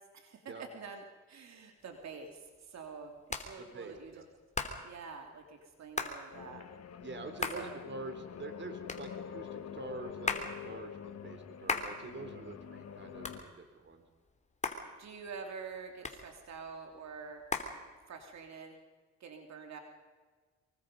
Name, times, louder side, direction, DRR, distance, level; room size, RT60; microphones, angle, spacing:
voice 1, 0.0-4.2 4.8-6.6 7.5-7.7 15.0-17.4 18.1-18.8 19.2-19.8, right 5 dB, 60° right, 4 dB, 3.0 m, -47 dB
Hands, 1.8-18.5, left 3 dB, 25° left, 3.2 m, -41 dB
voice 2, 3.6-4.3 7.0-10.3 10.6-14.0, right 3 dB, 40° right, 7 dB, 3.5 m, -46 dB
sound 1, 6.3-13.4, left 8 dB, 55° left, 1.7 m, -46 dB
25.0 x 23.5 x 5.3 m, 1.4 s
cardioid pair, 90°, 30 cm